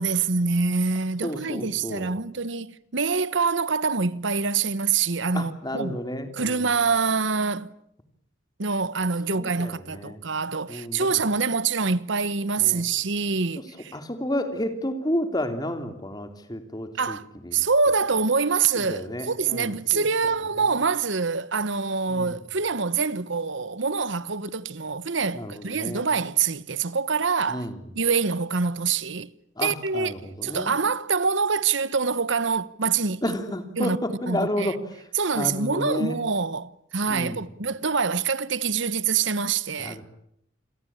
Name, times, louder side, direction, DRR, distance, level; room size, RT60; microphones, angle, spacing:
voice 1, 0.0-6.0 6.3-7.7 8.6-14.0 17.0-17.3 17.5-27.7 27.9-29.3 29.6-33.4 33.8-34.0 34.3-34.7 35.1-40.0, right 5 dB, 65° right, 1.1 m, -25 dB
voice 2, 1.2-2.1 5.3-6.7 9.3-10.2 10.7-11.1 12.6-12.8 13.9-17.2 17.4-17.6 18.7-20.3 22.1-22.4 25.3-26.0 27.5-27.8 29.6-30.7 33.2-34.8 35.3-36.2 37.1-37.5 39.8-40.0, left 1 dB, 20° left, 3.3 m, -31 dB
28.5 x 22.5 x 8.8 m
head